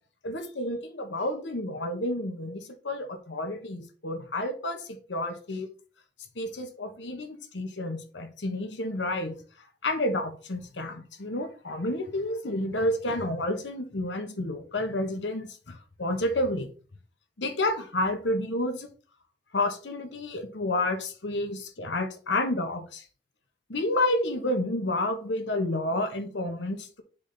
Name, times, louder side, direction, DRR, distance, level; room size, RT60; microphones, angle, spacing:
voice 1, 0.2-5.7 6.4-9.4 9.8-16.7 17.4-18.9 19.5-23.0 23.7-27.0, left 1 dB, 85° left, 1.1 m, -30 dB
7.2 x 3.4 x 4.0 m
head